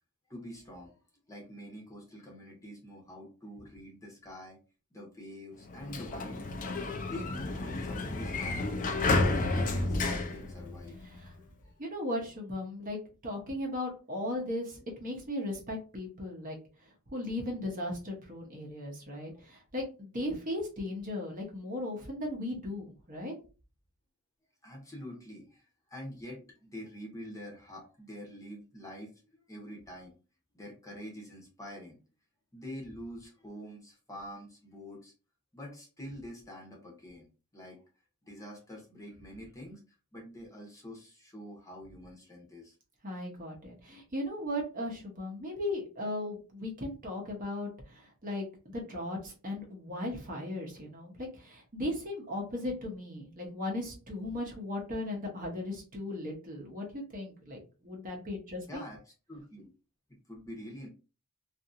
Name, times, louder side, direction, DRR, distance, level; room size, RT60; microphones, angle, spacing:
voice 1, 0.3-1.0 1.3-4.6 4.9-6.4 7.0-11.7 24.6-30.2 30.5-32.0 32.5-35.1 35.5-37.3 37.5-37.8 38.2-39.8 40.1-42.7 58.7-59.0 59.3-59.7 60.3-60.9, equal, 15° left, -1 dB, 0.8 m, -46 dB
Sliding door, 5.6-11.3, left 2 dB, 35° left, 0.4 m, -31 dB
voice 2, 11.8-16.6 17.1-23.4 43.0-58.8, left 1 dB, 40° right, 0 dB, 0.8 m, -37 dB
2.7 x 2.5 x 2.5 m, 0.34 s
head